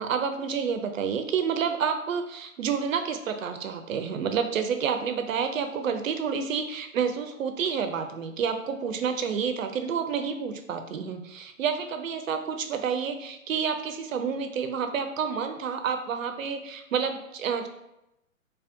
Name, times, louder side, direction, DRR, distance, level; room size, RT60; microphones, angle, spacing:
voice 1, 0.0-17.7, right 6 dB, 75° right, 7 dB, 0.5 m, -29 dB
3.4 x 2.2 x 2.5 m, 0.87 s
figure-of-eight pair, 130°, 40 cm